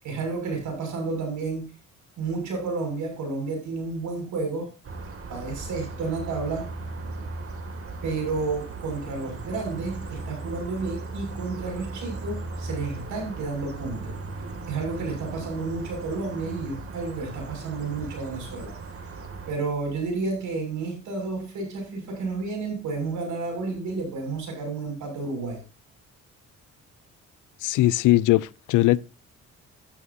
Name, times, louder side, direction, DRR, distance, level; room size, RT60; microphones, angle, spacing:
voice 1, 0.0-1.7 2.2-4.7 5.3-6.7 8.0-14.1 14.7-18.7 19.5-25.6, right 3 dB, 80° right, 6.8 m, -31 dB
sound 1, 4.8-19.5, right 3 dB, 50° right, 2.5 m, -37 dB
voice 2, 27.6-29.0, left 16 dB, 85° left, 0.5 m, -20 dB
13.5 x 12.5 x 2.8 m
cardioid pair, 90°, 30 cm